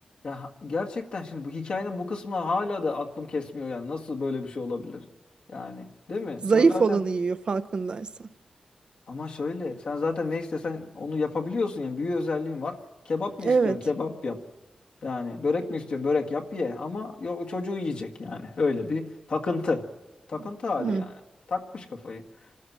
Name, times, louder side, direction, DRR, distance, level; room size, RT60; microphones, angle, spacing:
voice 1, 0.2-5.0 5.5-7.0 9.1-12.8 13.1-14.4 15.0-19.9 20.3-21.2 21.5-22.2, left 3 dB, 60° left, 1.8 m, -30 dB
voice 2, 6.4-8.3 13.4-13.8 20.8-21.0, right 4 dB, 45° right, 0.6 m, -23 dB
27.0 x 13.0 x 7.4 m
wide cardioid pair, 150°, 2 cm